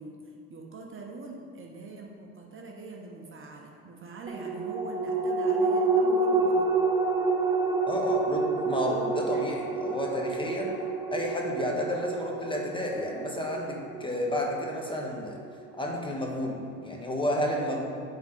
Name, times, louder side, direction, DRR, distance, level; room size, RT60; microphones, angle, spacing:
voice 1, 0.0-6.8 9.3-9.5, right 3 dB, 30° right, 1 dB, 0.9 m, -43 dB
sound 1, 4.3-15.1 15.5-15.6, right 3 dB, 10° right, 0.5 m, -28 dB
voice 2, 7.9-10.8 11.1-15.4 15.8-17.9, left 1 dB, 15° left, -1 dB, 1.2 m, -31 dB
8.1 x 3.8 x 5.0 m, 2.2 s
hypercardioid pair, 75°, 38 cm